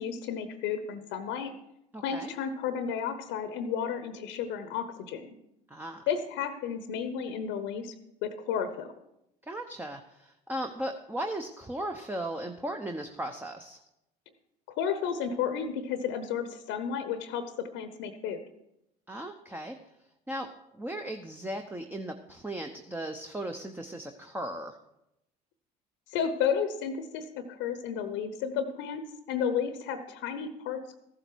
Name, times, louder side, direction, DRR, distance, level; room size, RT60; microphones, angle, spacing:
voice 1, 0.0-1.5 2.0-5.3 6.1-7.9 8.2-8.9 14.7-18.4 26.1-29.0 29.3-31.0, left 7 dB, 70° left, 10 dB, 0.9 m, -32 dB
voice 2, 1.9-2.3 5.7-6.0 9.4-13.8 19.1-19.8 20.3-20.5 20.7-24.8, right 1 dB, 10° right, 5 dB, 0.9 m, -37 dB
14.0 x 7.7 x 4.6 m, 0.84 s
hypercardioid pair, 70°, 20 cm